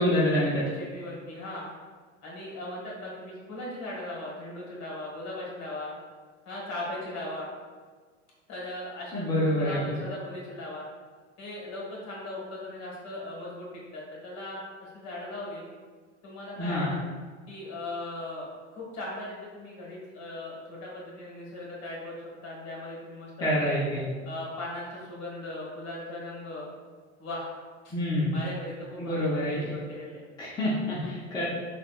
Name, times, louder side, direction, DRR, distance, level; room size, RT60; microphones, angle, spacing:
voice 1, 0.0-0.7 9.1-9.8 16.6-16.9 23.4-24.0 27.9-28.3 29.0-29.6 30.4-31.5, left 1 dB, 10° left, -7 dB, 0.6 m, -26 dB
voice 2, 0.8-1.7 2.2-5.9 6.4-7.5 8.5-10.9 11.4-13.7 13.9-15.6 16.2-17.0 17.5-23.6 24.2-26.7 27.2-27.5 27.8-27.9 28.3-30.2, left 1 dB, 45° left, -4 dB, 1.3 m, -38 dB
3.3 x 2.4 x 2.4 m, 1.5 s
hypercardioid pair, 90°, 36 cm